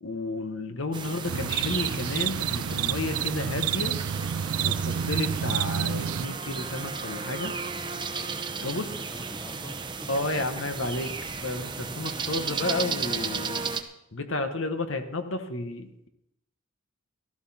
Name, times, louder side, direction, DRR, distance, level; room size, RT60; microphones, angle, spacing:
voice 1, 0.0-3.9 4.6-7.5 8.6-8.9 10.1-11.1 11.4-13.6 14.1-16.1, left 2 dB, 70° left, 8 dB, 1.2 m, -32 dB
sound 1, 0.9-13.8, right 5 dB, 20° right, 0.7 m, -34 dB
sound 2, 1.2-6.3, right 8 dB, 90° right, 0.4 m, -29 dB
voice 2, 4.5-5.0 8.5-10.1, equal, 15° left, 6 dB, 1.0 m, -47 dB
15.5 x 13.0 x 4.3 m, 0.83 s
head